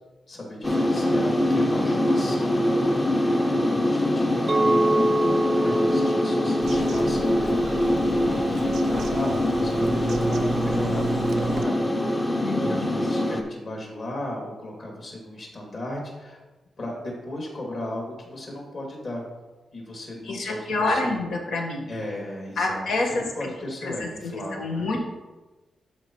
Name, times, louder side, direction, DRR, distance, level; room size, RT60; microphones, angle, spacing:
voice 1, 0.3-4.8 5.6-12.3 12.6-16.4 16.8-19.2 19.7-21.1 21.9-24.9, left 1 dB, 45° left, -2 dB, 2.4 m, -36 dB
sound 1, 0.6-13.4, left 1 dB, 20° left, 0.6 m, -23 dB
Chink clink, 4.5-8.7, right 1 dB, 25° right, 0.6 m, -27 dB
Bird vocalization bird call bird song, 6.6-11.6, right 4 dB, 70° right, 0.5 m, -33 dB
voice 2, 12.4-12.9 20.2-21.9 22.6-23.5 23.8-25.0, left 2 dB, 85° left, 0 dB, 1.4 m, -27 dB
12.0 x 4.8 x 3.1 m, 1.2 s
wide cardioid pair, 140°, 0 cm